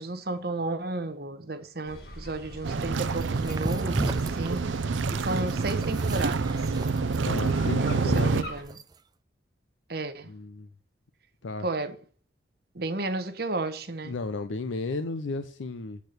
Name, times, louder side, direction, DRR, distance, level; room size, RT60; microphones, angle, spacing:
voice 1, 0.0-4.7 5.1-6.6 7.8-8.7 9.9-10.3 11.6-12.0 12.7-14.1, right 2 dB, 55° right, 0.9 m, -33 dB
sound 1, 1.9-8.6, equal, 55° left, 1.9 m, -43 dB
sound 2, 2.6-8.4, right 4 dB, 85° right, 0.5 m, -27 dB
sound 3, 3.1-9.0, right 2 dB, 20° right, 0.4 m, -35 dB
voice 2, 7.2-8.5 10.3-10.7 11.4-11.6 14.0-16.0, left 3 dB, 85° left, 0.6 m, -33 dB
8.3 x 4.5 x 6.5 m
head